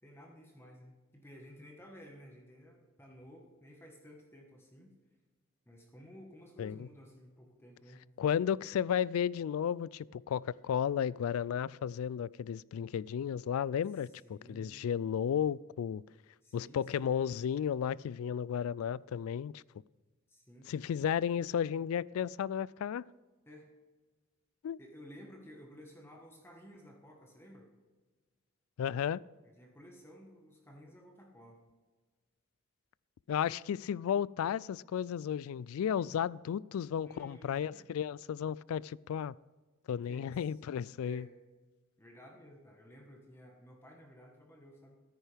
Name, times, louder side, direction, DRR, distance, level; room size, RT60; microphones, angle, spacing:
voice 1, 0.0-5.0 5.7-8.1 14.0-14.7 16.4-17.1 20.3-20.7 23.4-23.7 24.8-27.7 29.4-31.6 37.0-37.8 39.9-40.6 41.0-41.3 42.0-45.0, equal, 10° left, 1.4 m, -54 dB
voice 2, 8.2-16.0 16.5-19.6 20.7-23.1 24.6-24.8 28.8-29.2 33.3-39.4 39.9-41.3, left 8 dB, 80° left, 0.3 m, -33 dB
13.5 x 10.0 x 3.5 m
head